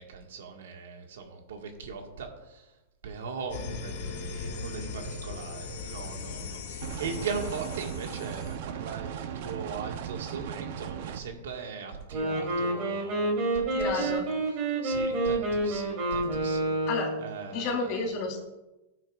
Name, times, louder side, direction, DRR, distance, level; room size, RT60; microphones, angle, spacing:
voice 1, 0.0-2.8 3.0-16.8 17.2-17.9, right 5 dB, 85° right, 2 dB, 1.9 m, -39 dB
sound 1, 3.5-8.6, left 4 dB, 70° left, 2.3 m, -39 dB
sound 2, 6.8-11.2, right 9 dB, 55° right, 0.8 m, -37 dB
Wind instrument woodwind instrument, 12.0-17.3, right 2 dB, 40° right, 3.4 m, -28 dB
voice 2, 13.7-14.3 16.9-17.1 17.5-18.4, left 3 dB, 40° left, -2 dB, 4.1 m, -31 dB
15.0 x 9.0 x 2.5 m, 1.0 s
supercardioid pair, 155°, 0 cm